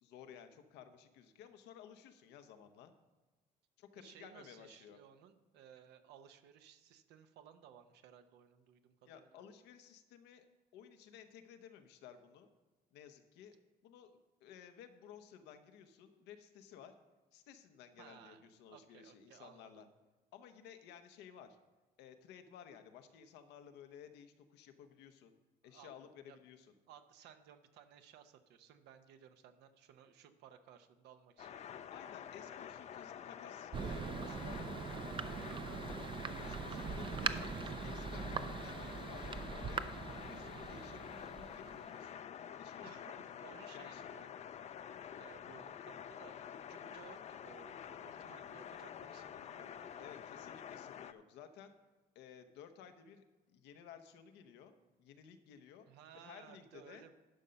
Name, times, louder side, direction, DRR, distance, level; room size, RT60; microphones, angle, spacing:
voice 1, 0.0-2.9 3.8-5.0 9.0-10.4 10.7-12.5 12.9-13.5 13.8-16.9 17.3-19.9 20.3-21.6 22.0-25.3 25.6-26.7 31.9-35.2 36.3-39.8 40.2-43.2 43.7-44.1 50.0-51.8 52.1-55.9 56.1-57.1, left 8 dB, 90° left, 8 dB, 0.9 m, -56 dB
voice 2, 4.0-9.5 18.0-19.8 25.7-25.9 26.3-26.4 26.9-31.9 34.2-34.6 34.9-35.0 35.4-35.7 36.9-37.5 42.8-44.5 45.2-50.1 55.9-57.1, right 9 dB, 85° right, 9 dB, 0.8 m, -59 dB
sound 1, 31.4-51.1, left 9 dB, 40° left, 0.4 m, -48 dB
Thunder, 33.7-42.1, right 6 dB, 30° right, 0.4 m, -42 dB
11.5 x 5.6 x 5.2 m, 1.2 s
cardioid pair, 110°, 17 cm